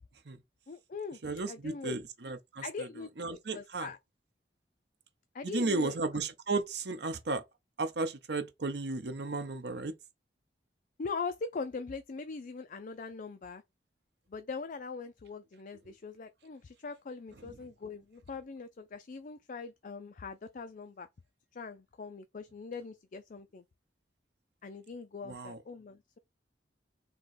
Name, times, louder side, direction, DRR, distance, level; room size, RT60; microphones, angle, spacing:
voice 1, 0.7-1.2 1.5-2.0 2.6-4.0 5.3-6.0 11.0-13.6 14.3-21.1 21.5-23.6 24.6-26.2, left 4 dB, 50° left, 0.4 m, -41 dB
voice 2, 1.2-2.9 3.2-3.9 5.4-7.4 7.8-9.9 25.2-25.6, right 3 dB, 65° right, 0.8 m, -34 dB
3.7 x 2.9 x 4.2 m
head